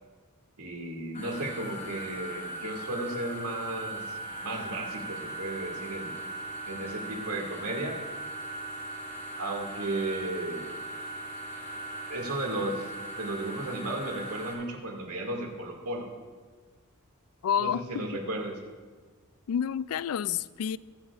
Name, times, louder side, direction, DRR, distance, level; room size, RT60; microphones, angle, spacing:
voice 1, 0.6-6.1 6.7-8.0 9.4-10.7 12.1-12.8 13.2-16.1 17.6-18.6, right 2 dB, 85° right, 1 dB, 2.2 m, -34 dB
sound 1, 1.1-14.5, right 2 dB, 35° left, 2.6 m, -39 dB
voice 2, 17.4-18.1 19.5-20.8, left 8 dB, 70° left, 18 dB, 0.3 m, -29 dB
22.0 x 11.5 x 2.5 m, 1.5 s
head